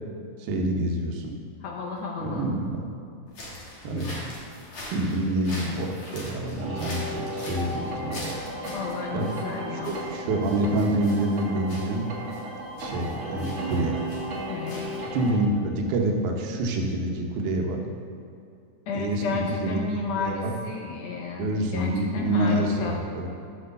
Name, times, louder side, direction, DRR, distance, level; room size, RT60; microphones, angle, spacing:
voice 1, 0.4-1.3 2.2-2.8 3.8-4.2 4.9-8.4 9.1-9.3 9.8-12.1 12.8-14.0 15.1-17.8 18.9-19.8 20.2-20.5 20.9-21.0 21.4-23.3, right 1 dB, 85° right, 1 dB, 2.3 m, -27 dB
voice 2, 1.6-2.5 8.7-10.0 14.5-14.9 18.9-23.0, left 4 dB, 75° left, 0 dB, 1.6 m, -32 dB
sound 1, 3.3-15.3, left 1 dB, 50° left, 2.2 m, -42 dB
sound 2, 6.6-15.4, right 1 dB, 55° right, 1.6 m, -34 dB
6.0 x 5.2 x 6.6 m, 2.6 s
omnidirectional pair, 3.5 m